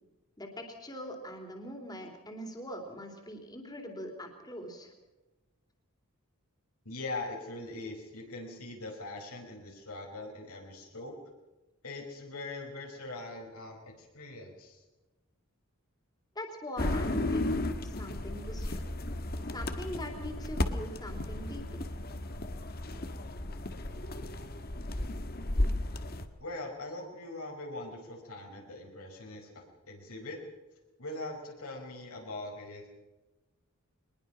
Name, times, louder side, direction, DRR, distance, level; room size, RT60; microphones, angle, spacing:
voice 1, 0.4-4.9 16.3-18.8 19.5-21.8, equal, 20° left, 3 dB, 3.4 m, -42 dB
voice 2, 6.8-11.1 11.8-14.8 26.4-30.4 31.0-33.0, left 2 dB, 80° left, 0 dB, 5.0 m, -42 dB
sound 1, 16.8-26.3, left 1 dB, 45° left, 1.5 m, -34 dB
23.0 x 21.0 x 6.0 m, 1.1 s
head